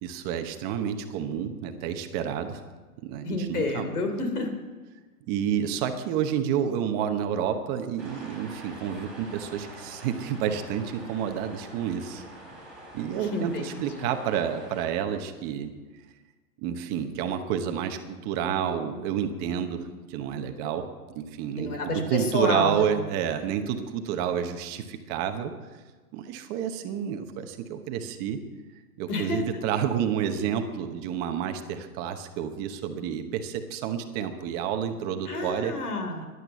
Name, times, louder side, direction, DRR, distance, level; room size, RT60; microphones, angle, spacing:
voice 1, 0.0-2.6 3.0-3.9 5.3-12.2 12.9-15.7 16.6-19.8 20.1-20.9 21.1-25.5 26.1-28.4 29.0-35.7, right 8 dB, 20° right, 7 dB, 0.9 m, -29 dB
voice 2, 3.2-4.5 13.2-14.1 21.6-22.9 29.1-29.4 35.3-36.3, left 2 dB, 70° left, 5 dB, 3.8 m, -30 dB
sound 1, 8.0-14.9, right 1 dB, ahead, 4.3 m, -45 dB
14.0 x 11.0 x 7.0 m, 1.3 s
hypercardioid pair, 150°, 46 cm